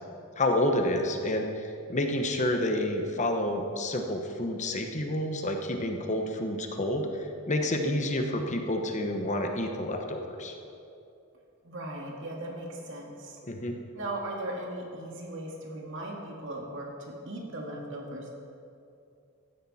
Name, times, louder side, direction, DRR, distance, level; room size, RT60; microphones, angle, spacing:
voice 1, 0.4-7.1 7.5-10.6 13.5-13.8, left 1 dB, 35° left, 4 dB, 1.1 m, -29 dB
voice 2, 11.6-13.4 13.9-18.3, right 1 dB, 60° right, -1 dB, 2.3 m, -38 dB
15.5 x 13.0 x 4.3 m, 2.6 s
head